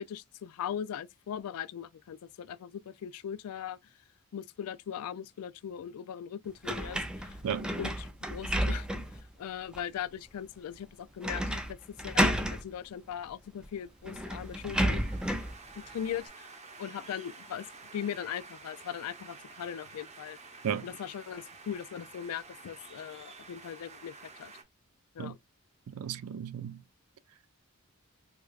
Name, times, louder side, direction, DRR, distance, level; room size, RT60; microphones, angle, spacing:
voice 1, 0.0-3.8 4.3-7.4 7.8-8.9 9.4-11.8 12.0-15.1 15.8-16.5 16.8-17.7 17.9-20.4 20.8-24.5 25.2-25.4, left 9 dB, 80° left, 0.3 m, -39 dB
sound 1, 6.6-9.2 9.7-9.8 11.2-11.7 12.0-12.6 13.6-13.7 14.0-15.5, equal, 5° right, 0.3 m, -31 dB
sound 2, 13.9-24.6, right 4 dB, 30° right, 0.8 m, -51 dB
voice 2, 25.9-26.8, right 8 dB, 80° right, 0.4 m, -34 dB
4.7 x 2.2 x 2.4 m
head